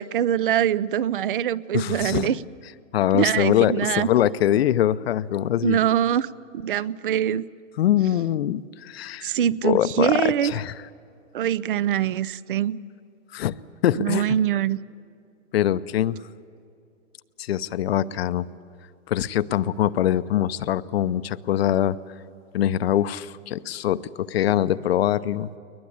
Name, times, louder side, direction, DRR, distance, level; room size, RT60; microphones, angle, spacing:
voice 1, 0.0-2.4 3.1-4.1 5.6-6.3 6.6-7.4 9.2-10.5 11.3-12.8 14.0-14.8, right 10 dB, 40° right, 21 dB, 0.5 m, -23 dB
voice 2, 1.7-2.4 2.9-5.8 7.8-9.3 9.6-10.7 13.3-13.5 13.8-14.3 15.5-16.2 17.4-18.4 19.1-22.0 22.5-25.6, left 11 dB, 50° left, 15 dB, 0.7 m, -23 dB
22.0 x 21.0 x 8.5 m, 2.5 s
hypercardioid pair, 160°, 40 cm